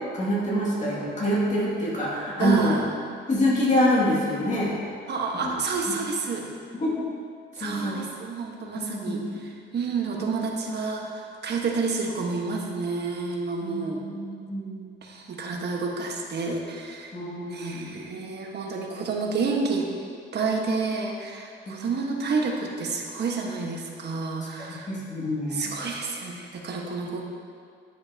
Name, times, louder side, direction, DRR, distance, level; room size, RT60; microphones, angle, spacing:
voice 1, 0.1-2.8 3.3-4.8 5.4-5.6 6.8-7.1 7.6-8.0 8.8-9.4 13.6-14.9 17.1-18.0 21.7-21.9 24.6-25.7, left 1 dB, 35° left, -6 dB, 2.3 m, -26 dB
voice 2, 2.4-2.8 5.1-6.4 7.6-14.0 15.0-17.1 17.5-19.9 20.3-24.9 25.5-27.2, right 4 dB, 55° right, 0 dB, 1.4 m, -29 dB
9.7 x 9.7 x 2.8 m, 2.2 s
cardioid pair, 90°, 20 cm